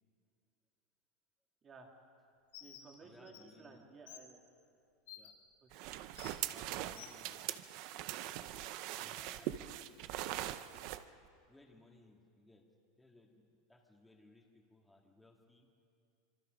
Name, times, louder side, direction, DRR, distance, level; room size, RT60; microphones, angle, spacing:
voice 1, 1.6-1.9 2.6-4.4 5.6-6.0, right 4 dB, 20° right, 2 dB, 2.3 m, -56 dB
Bird, 2.5-2.8 3.3-3.4 4.1-4.2 5.1-5.3 6.2-6.3 7.0-7.1, left 13 dB, 80° left, 3.3 m, -51 dB
voice 2, 3.0-3.9 5.2-5.3 6.5-7.6 8.9-9.9 11.5-12.6 13.0-15.7, left 2 dB, 5° left, 1 dB, 2.0 m, -63 dB
sound 1, 5.7-11.0, right 13 dB, 45° right, 0.7 m, -42 dB
25.5 x 23.5 x 5.2 m, 2.4 s
supercardioid pair, 165°, 0 cm